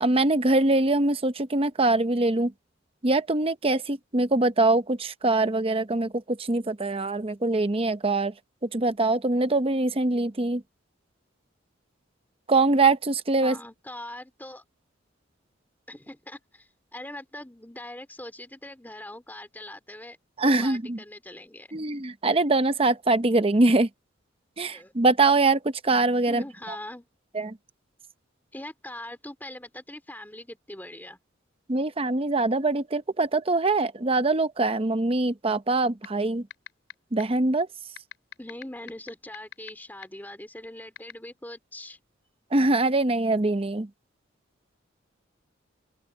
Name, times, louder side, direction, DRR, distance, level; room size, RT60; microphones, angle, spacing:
voice 1, 0.0-2.5 3.0-8.3 8.6-10.6 12.5-13.6 20.4-21.0 21.7-23.9 24.6-26.4 27.3-27.6 31.7-36.5 37.1-37.7 42.5-43.9, right 2 dB, 30° right, 0.8 m, -23 dB
voice 2, 13.4-14.6 15.9-20.2 20.5-21.7 24.7-24.9 26.3-27.1 28.5-31.2 38.4-42.0, left 1 dB, 10° left, 2.4 m, -42 dB
sound 1, 36.0-36.1 36.5-36.9 37.2-37.3 38.0-39.7 40.0-40.1 41.0-41.1, left 7 dB, 75° left, 3.5 m, -38 dB
open air
head